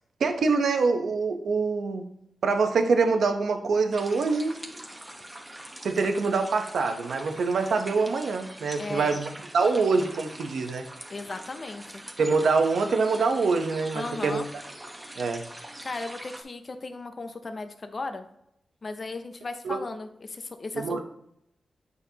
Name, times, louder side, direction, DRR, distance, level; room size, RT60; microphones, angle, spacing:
voice 1, 0.2-2.1 2.4-4.6 5.8-10.8 12.2-14.4 15.2-15.4 19.6-19.8 20.7-21.0, right 4 dB, 75° right, 6 dB, 0.8 m, -25 dB
sound 1, 3.9-16.4, right 1 dB, 15° right, 0.9 m, -43 dB
voice 2, 8.8-9.2 11.1-12.0 13.9-14.5 15.8-18.3 18.8-21.0, left 3 dB, 40° left, 8 dB, 0.6 m, -36 dB
8.3 x 5.2 x 2.8 m, 0.75 s
wide cardioid pair, 120°, 0 cm